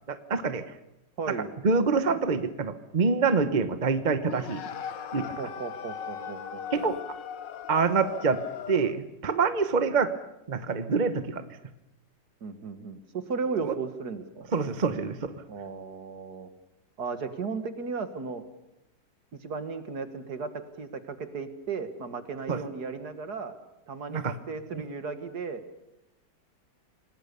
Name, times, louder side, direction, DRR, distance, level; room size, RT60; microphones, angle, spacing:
voice 1, 0.1-0.6 1.6-4.6 5.1-5.3 6.7-7.0 7.7-10.1 10.5-11.5 13.6-13.7 14.5-15.4 22.5-22.6 24.1-24.3 24.7-24.8, right 4 dB, 30° right, 10 dB, 0.9 m, -26 dB
voice 2, 1.2-1.5 5.4-6.9 12.4-14.5 15.5-16.5 17.0-18.4 19.4-23.6 23.9-25.8, right 5 dB, 55° right, 9 dB, 2.1 m, -35 dB
sound 1, 4.2-9.1, left 8 dB, 70° left, 1.7 m, -38 dB
27.5 x 19.0 x 6.9 m, 0.87 s
omnidirectional pair, 2.1 m